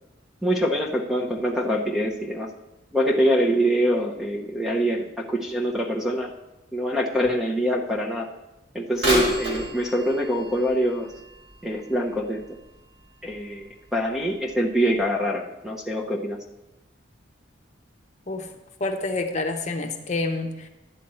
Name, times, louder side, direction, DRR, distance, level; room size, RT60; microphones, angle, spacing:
voice 1, 0.4-2.5 2.9-6.3 6.7-8.3 8.7-11.1 11.6-12.4 13.2-16.4, equal, ahead, 1 dB, 0.7 m, -24 dB
Bird vocalization bird call bird song / Telephone, 8.9-12.8 13.3-13.4 14.2-14.3 15.0-15.1, right 1 dB, 80° right, 3.2 m, -30 dB
voice 2, 18.8-20.7, left 2 dB, 35° left, 5 dB, 0.9 m, -28 dB
11.5 x 9.1 x 4.3 m, 0.99 s
head